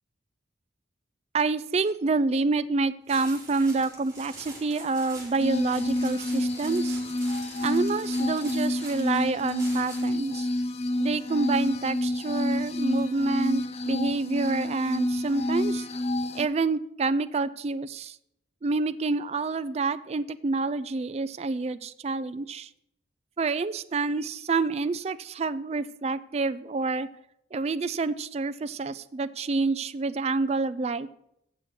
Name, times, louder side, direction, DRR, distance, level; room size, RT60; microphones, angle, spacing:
voice 1, 1.3-7.0 7.6-10.5 11.0-15.9 16.3-18.2 18.6-22.7 23.4-27.1 27.5-31.1, right 3 dB, 35° right, 14 dB, 0.4 m, -28 dB
sound 1, 3.1-10.2, right 2 dB, 20° right, 3.0 m, -45 dB
sound 2, 5.4-16.4, left 1 dB, 35° left, 0.5 m, -29 dB
8.2 x 6.4 x 5.9 m, 0.76 s
head